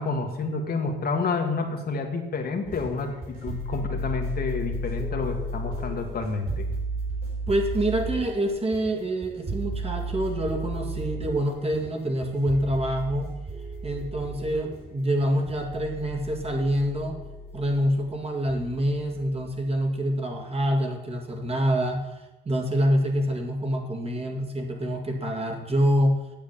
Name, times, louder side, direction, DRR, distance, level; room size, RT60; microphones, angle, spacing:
voice 1, 0.0-6.7, left 4 dB, 50° left, 3 dB, 1.7 m, -29 dB
sound 1, 2.6-19.9, right 1 dB, 45° right, 4.5 m, -34 dB
voice 2, 7.5-13.3 13.8-17.2 17.5-22.1 22.5-26.2, equal, 30° right, 2 dB, 2.2 m, -26 dB
9.0 x 7.1 x 7.4 m, 1.0 s
cardioid pair, 90°, 20 cm